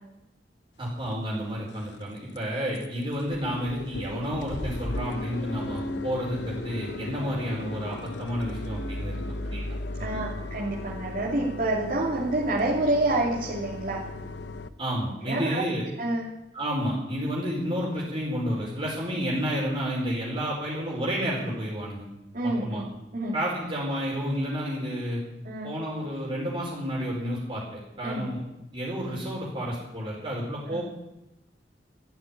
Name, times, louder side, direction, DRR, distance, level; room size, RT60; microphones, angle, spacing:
voice 1, 0.8-9.7 10.0-10.1 14.8-15.8 16.5-22.1 22.4-22.8 23.3-25.2 25.6-28.4 28.7-30.8, equal, 30° right, -4 dB, 4.5 m, -30 dB
sound 1, 1.0-1.1 1.6-2.0 2.3-2.4 2.7-2.9 3.1-14.7, left 2 dB, 75° left, 0.8 m, -36 dB
voice 2, 10.0-14.0 15.2-15.6 16.0-16.3 19.1-19.2 22.3-22.8 23.1-23.4 25.4-25.7 28.0-28.3 30.7-30.8, right 2 dB, 50° right, -6 dB, 2.9 m, -28 dB
14.0 x 9.5 x 10.0 m, 0.93 s
head